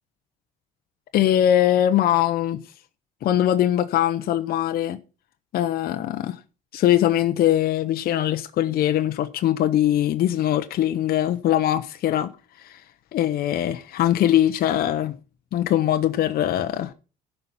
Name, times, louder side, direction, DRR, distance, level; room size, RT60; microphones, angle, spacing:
voice 1, 1.1-2.6 3.2-5.0 5.5-6.4 6.7-12.3 12.6-12.8 13.1-15.1 15.5-16.9, left 12 dB, 65° left, 0.9 m, -21 dB
13.0 x 5.6 x 5.7 m
cardioid pair, 110°, 17 cm